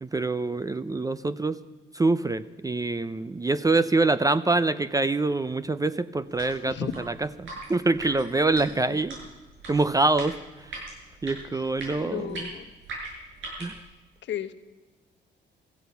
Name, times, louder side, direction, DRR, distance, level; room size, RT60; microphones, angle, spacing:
voice 1, 0.0-1.6 1.9-9.2 9.7-10.8 11.2-12.5 13.6-13.8, right 3 dB, 15° right, 14 dB, 0.5 m, -25 dB
sound 1, 6.2-13.8, right 2 dB, 80° right, 6.8 m, -41 dB
voice 2, 11.9-12.7 14.2-14.5, left 10 dB, 65° left, 11 dB, 1.1 m, -34 dB
16.0 x 14.5 x 5.8 m, 1.2 s
cardioid pair, 90°, 20 cm